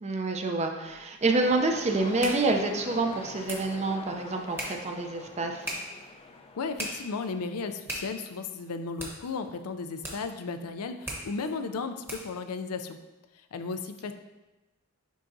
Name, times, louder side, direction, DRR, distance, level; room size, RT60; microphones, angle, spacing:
voice 1, 0.0-5.7, right 2 dB, 30° right, 4 dB, 0.5 m, -27 dB
sound 1, 0.8-12.4, equal, 10° right, 1.0 m, -42 dB
sound 2, 1.4-7.5, left 3 dB, 25° left, 0.4 m, -45 dB
voice 2, 6.6-13.0 13.3-14.1, left 4 dB, 80° left, 9 dB, 0.5 m, -35 dB
10.0 x 3.7 x 2.7 m, 1.1 s
head